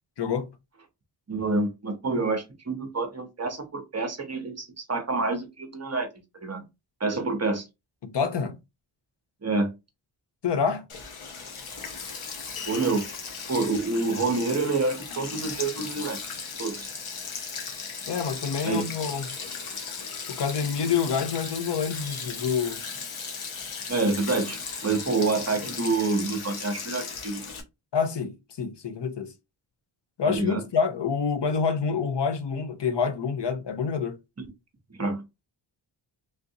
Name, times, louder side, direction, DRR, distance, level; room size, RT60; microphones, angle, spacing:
voice 1, 0.2-0.6 8.0-8.6 10.4-10.9 18.1-19.4 20.3-22.8 27.9-29.3 30.2-34.2, left 6 dB, 55° left, 0.6 m, -27 dB
voice 2, 1.3-6.1 6.3-6.6 7.0-7.6 9.4-9.7 12.7-13.1 13.5-16.2 16.6-16.9 18.6-18.8 23.9-27.4 30.2-30.6 34.4-34.5 34.9-35.2, right 3 dB, 30° right, 0.7 m, -27 dB
Sink (filling or washing), 10.9-27.6, left 5 dB, 80° left, 1.0 m, -37 dB
3.4 x 2.5 x 2.7 m
wide cardioid pair, 130°, 49 cm